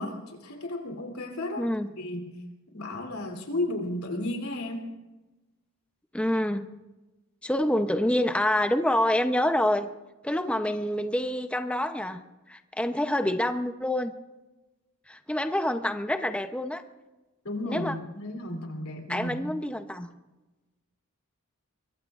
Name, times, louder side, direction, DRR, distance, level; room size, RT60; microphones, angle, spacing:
voice 1, 0.0-1.7 2.0-2.3 2.7-4.9 17.4-19.4, left 1 dB, 85° left, 3 dB, 3.1 m, -33 dB
voice 2, 1.6-1.9 6.1-6.7 7.4-9.9 10.2-14.1 15.1-16.8 17.7-17.9 19.1-20.1, left 1 dB, 5° left, 7 dB, 0.6 m, -27 dB
23.5 x 23.0 x 2.5 m, 1.1 s
head